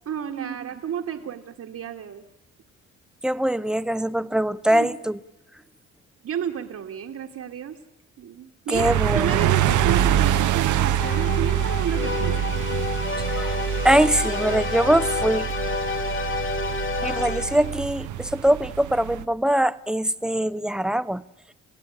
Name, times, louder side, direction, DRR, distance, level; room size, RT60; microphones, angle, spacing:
voice 1, 0.1-2.2 4.7-4.9 6.2-7.8 8.2-12.5, right 9 dB, 60° right, 1 dB, 1.9 m, -31 dB
voice 2, 3.2-5.2 8.7-9.4 13.2-13.6 13.8-15.5 17.0-21.2, right 1 dB, ahead, 15 dB, 0.8 m, -22 dB
sound 1, 8.7-19.2, right 11 dB, 75° right, 1.1 m, -25 dB
sound 2, 11.0-17.8, left 5 dB, 40° left, 1.7 m, -29 dB
29.5 x 16.0 x 9.9 m, 0.97 s
cardioid pair, 90°, 30 cm